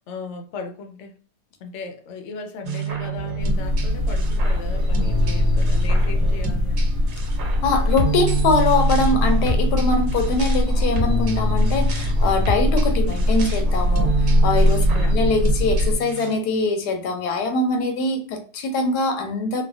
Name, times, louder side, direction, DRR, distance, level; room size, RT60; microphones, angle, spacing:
voice 1, 0.1-1.2 1.6-6.9 14.9-15.2, left 4 dB, 65° left, 0.7 m, -36 dB
sound 1, 2.6-16.3, right 2 dB, 85° right, 1.3 m, -29 dB
sound 2, 3.4-16.0, left 1 dB, 50° right, 1.0 m, -21 dB
voice 2, 7.6-19.6, left 3 dB, 90° left, 1.2 m, -23 dB
3.1 x 2.1 x 2.4 m
omnidirectional pair, 1.7 m